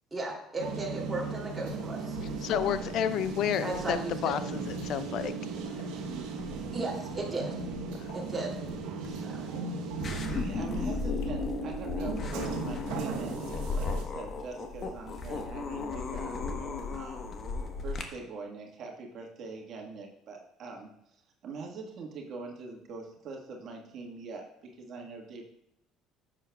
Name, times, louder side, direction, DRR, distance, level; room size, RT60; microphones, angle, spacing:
voice 1, 0.1-2.6 3.6-4.3 6.7-7.5 8.1-8.6 9.1-9.5, right 2 dB, 10° right, -4 dB, 2.7 m, -36 dB
sound 1, 0.6-14.0, right 4 dB, 85° right, 1.0 m, -37 dB
sound 2, 1.7-17.1, left 3 dB, 85° left, 1.5 m, -49 dB
voice 2, 2.4-4.0 4.2-5.3 8.0-8.1, left 9 dB, 65° left, 13 dB, 0.5 m, -30 dB
sound 3, 10.0-18.0, left 4 dB, 40° left, 1.2 m, -35 dB
voice 3, 10.2-13.4 13.7-17.3 17.8-20.9 21.4-24.4 24.8-25.4, right 4 dB, 55° right, 0 dB, 1.5 m, -43 dB
11.0 x 7.5 x 2.3 m, 0.78 s
cardioid pair, 100°, 0 cm